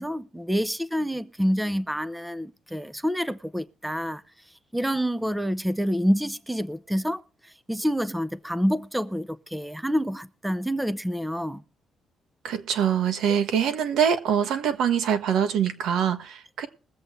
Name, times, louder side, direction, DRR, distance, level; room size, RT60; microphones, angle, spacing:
voice 1, 0.0-4.2 4.7-11.6, equal, 5° right, 0.6 m, -27 dB
voice 2, 12.4-16.7, right 8 dB, 80° right, 1.4 m, -24 dB
21.5 x 7.8 x 3.2 m
cardioid pair, 90°, 0 cm